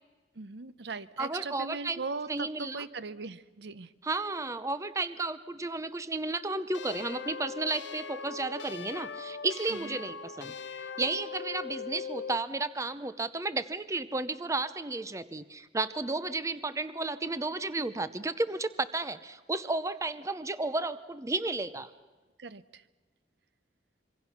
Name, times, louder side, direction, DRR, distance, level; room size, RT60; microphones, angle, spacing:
voice 1, 0.3-3.9 9.7-10.0 22.4-22.9, right 4 dB, 65° right, 16 dB, 0.7 m, -39 dB
voice 2, 1.2-2.0 2.3-2.8 4.0-21.9, right 3 dB, 15° right, 13 dB, 0.6 m, -33 dB
sound 1, 6.7-12.5, left 5 dB, 80° left, 1.0 m, -40 dB
26.0 x 24.0 x 5.9 m, 1.3 s
head